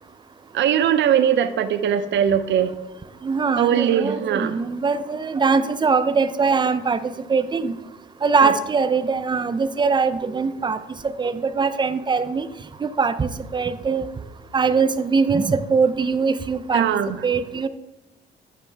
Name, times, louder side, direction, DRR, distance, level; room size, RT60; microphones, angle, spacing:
voice 1, 0.5-2.7 3.6-4.6 8.4-8.5 16.7-17.2, right 9 dB, 70° right, 11 dB, 0.6 m, -20 dB
voice 2, 3.2-7.8 8.2-10.8 11.2-12.5 12.8-14.0 14.5-16.8 17.2-17.7, right 5 dB, 25° right, 11 dB, 0.5 m, -22 dB
9.0 x 5.0 x 3.3 m, 0.98 s
cardioid pair, 90°, 20 cm